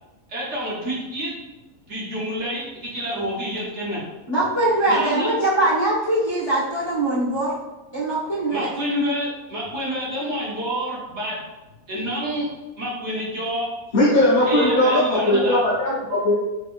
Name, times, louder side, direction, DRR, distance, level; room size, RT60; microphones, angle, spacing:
voice 1, 0.3-1.3 1.9-4.0 4.9-5.3 8.5-11.4 11.9-12.5 12.8-13.7 14.5-15.6, equal, 55° right, -5 dB, 1.2 m, -28 dB
voice 2, 4.3-7.5 7.9-8.7, right 2 dB, 20° left, -8 dB, 1.1 m, -22 dB
voice 3, 13.9-16.3, left 1 dB, 40° left, -7 dB, 0.7 m, -18 dB
3.5 x 3.3 x 2.5 m, 1.1 s
omnidirectional pair, 1.6 m